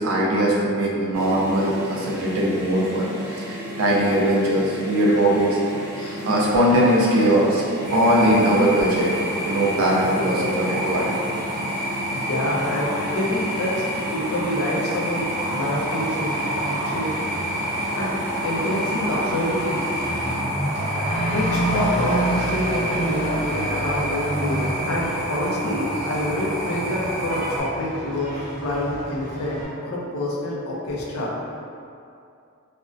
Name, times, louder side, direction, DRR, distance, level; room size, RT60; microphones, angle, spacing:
voice 1, 0.0-3.1 3.4-5.6 6.2-7.6 7.9-9.1 9.5-11.1, right 1 dB, 70° right, -4 dB, 0.4 m, -20 dB
sound 1, 1.1-20.4, left 1 dB, 15° right, 0.8 m, -34 dB
sound 2, 7.8-27.6, right 1 dB, 50° right, 0.8 m, -29 dB
voice 2, 12.1-17.1 18.0-18.2 18.4-19.9 21.3-31.3, left 1 dB, 75° left, -4 dB, 0.5 m, -27 dB
Truck / Accelerating revving vroom, 15.2-29.7, right 1 dB, 35° left, 0.6 m, -30 dB
2.4 x 2.1 x 2.4 m, 2.5 s
head